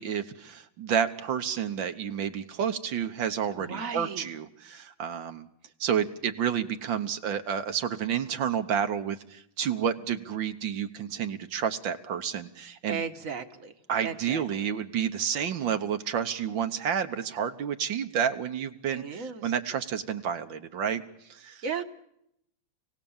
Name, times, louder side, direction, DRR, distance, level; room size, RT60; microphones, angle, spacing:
voice 1, 0.0-5.5 5.8-13.0 13.9-21.0 21.3-21.6, right 8 dB, 70° right, 8 dB, 1.7 m, -30 dB
voice 2, 3.5-4.3 12.9-13.7 14.0-14.6 18.9-19.5 21.6-21.8, right 6 dB, 45° right, 7 dB, 1.5 m, -35 dB
28.0 x 18.0 x 7.2 m, 0.79 s
omnidirectional pair, 2.2 m